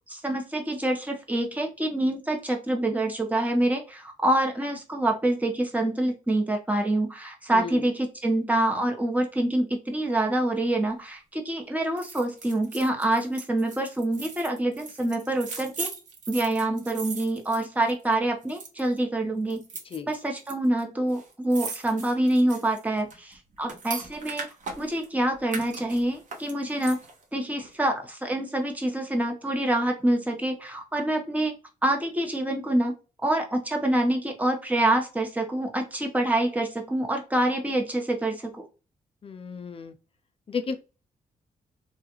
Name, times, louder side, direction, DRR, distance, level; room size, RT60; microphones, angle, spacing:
voice 1, 0.1-15.9 16.3-19.6 20.1-24.5 24.8-27.0 27.3-31.5 31.8-32.9 33.2-38.6, right 1 dB, 10° right, 1.0 m, -26 dB
voice 2, 7.5-7.9 19.9-20.1 39.2-39.9 40.5-40.8, left 5 dB, 40° left, 0.5 m, -33 dB
sound 1, 12.0-18.1 18.4-19.0 19.5-20.5 20.8-20.9 21.1-25.1 25.5-27.2 27.6-27.7, right 4 dB, 60° right, 1.0 m, -39 dB
3.5 x 2.4 x 2.8 m
cardioid pair, 105°, 14 cm